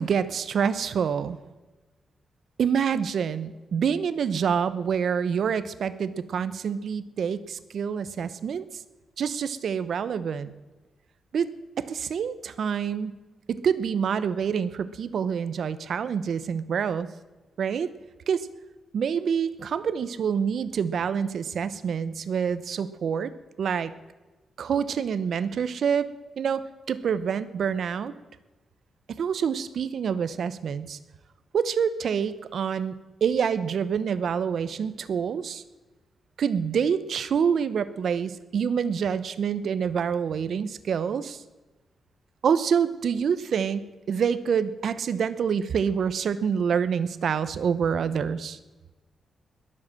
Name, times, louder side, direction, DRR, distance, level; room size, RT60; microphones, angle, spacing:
voice 1, 0.0-1.4 2.6-8.6 9.2-10.5 11.3-11.5 11.8-13.2 13.5-17.1 17.6-17.9 18.3-18.5 18.9-23.3 23.6-23.9 24.6-26.1 26.4-26.6 26.9-28.1 29.2-31.0 31.5-33.0 33.2-35.6 36.4-41.4 42.4-48.6, right 7 dB, 55° right, 14 dB, 0.8 m, -26 dB
20.5 x 7.6 x 7.6 m, 1.2 s
wide cardioid pair, 175°, 0 cm